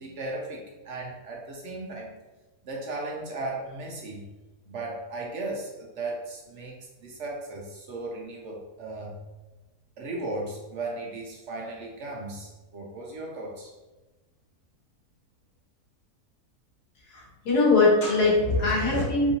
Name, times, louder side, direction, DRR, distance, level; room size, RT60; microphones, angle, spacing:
voice 1, 0.0-2.1 2.6-4.2 4.7-9.2 10.0-13.7, right 2 dB, 65° right, -1 dB, 0.8 m, -36 dB
voice 2, 17.0-19.3, left 3 dB, 75° left, -5 dB, 1.7 m, -22 dB
3.6 x 2.6 x 2.7 m, 1.1 s
omnidirectional pair, 1.6 m